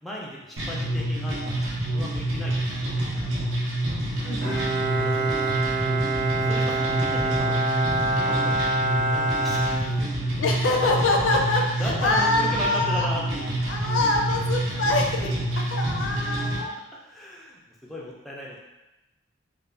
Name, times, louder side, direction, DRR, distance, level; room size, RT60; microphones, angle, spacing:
voice 1, 0.0-3.5 3.8-4.0 5.0-5.6 6.3-7.7 8.1-8.6 9.0-10.3 11.3-13.7 16.9-18.6, equal, ahead, -4 dB, 0.3 m, -37 dB
sound 1, 0.6-16.6, right 1 dB, 80° right, 0.6 m, -27 dB
voice 2, 4.2-4.9 10.4-13.1 13.7-16.7, left 2 dB, 75° left, 1 dB, 0.4 m, -25 dB
Bowed string instrument, 4.4-10.6, right 2 dB, 40° right, 0.7 m, -26 dB
2.4 x 2.1 x 3.2 m, 1.0 s
head